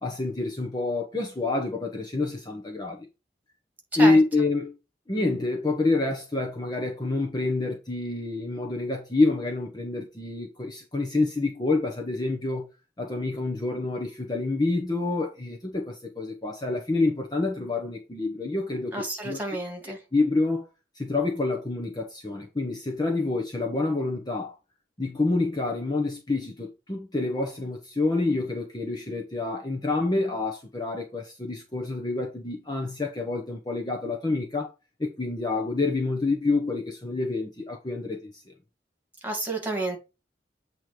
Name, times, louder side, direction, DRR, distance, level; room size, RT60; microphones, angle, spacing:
voice 1, 0.0-3.0 4.0-4.7 5.1-12.7 13.0-19.4 19.9-20.7 20.9-24.6 25.0-34.7 35.0-38.5, left 2 dB, 25° left, 1.0 m, -27 dB
voice 2, 18.9-20.0 39.2-40.0, right 2 dB, 10° right, 2.6 m, -30 dB
8.3 x 3.1 x 4.9 m
head